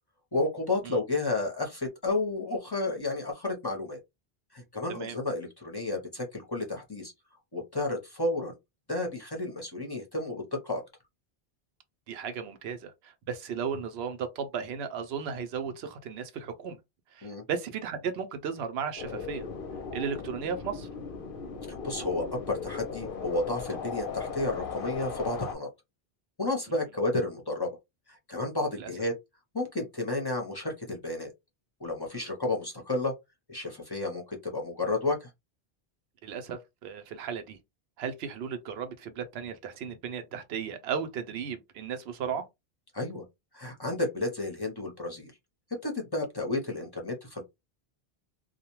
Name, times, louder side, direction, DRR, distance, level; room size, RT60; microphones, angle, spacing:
voice 1, 0.3-4.0 4.5-7.1 7.5-8.6 8.9-10.8 17.2-17.4 21.7-25.7 26.4-27.7 28.1-29.1 29.5-31.3 31.8-33.1 33.5-35.3 42.9-43.2 43.5-45.3 45.8-47.4, left 2 dB, 30° left, 0.6 m, -31 dB
voice 2, 12.1-16.8 17.1-19.5 19.9-20.9 28.8-28.9 36.2-37.6 38.0-42.4, right 7 dB, 85° right, 0.8 m, -35 dB
sound 1, 19.0-25.6, left 5 dB, 65° left, 0.7 m, -37 dB
2.4 x 2.1 x 2.9 m
omnidirectional pair, 1.1 m